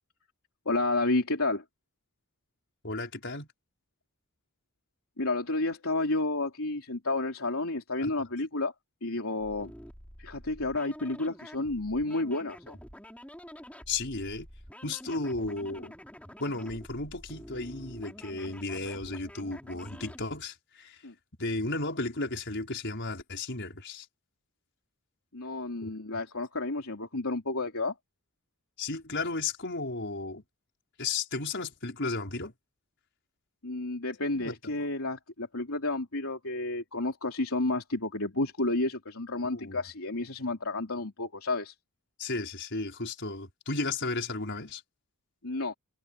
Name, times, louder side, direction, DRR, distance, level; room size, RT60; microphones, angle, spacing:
voice 1, 0.7-1.6 5.2-8.7 9.0-9.7 10.2-12.8 21.0-21.1 25.3-27.9 33.6-41.7 45.4-45.7, left 2 dB, 70° left, 3.5 m, -31 dB
voice 2, 2.8-3.5 8.0-8.1 13.9-14.5 14.8-15.9 16.4-21.0 21.4-24.1 25.8-25.9 28.8-30.4 31.0-32.5 34.3-34.5 39.4-39.8 42.2-44.8, left 3 dB, 55° left, 5.5 m, -34 dB
sound 1, 9.4-20.2, equal, 5° left, 6.4 m, -48 dB
head